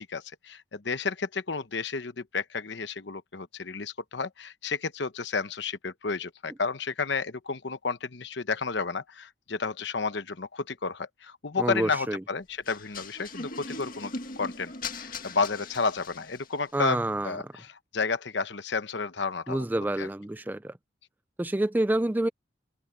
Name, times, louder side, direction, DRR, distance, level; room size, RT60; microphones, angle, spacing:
voice 1, 0.0-19.7 20.0-20.1, left 4 dB, 60° left, 0.9 m, -32 dB
voice 2, 11.6-12.2 16.7-17.4 19.5-20.7 21.4-22.3, right 1 dB, 10° right, 0.3 m, -28 dB
sound 1, 12.6-16.6, left 3 dB, 45° left, 2.0 m, -39 dB
open air
head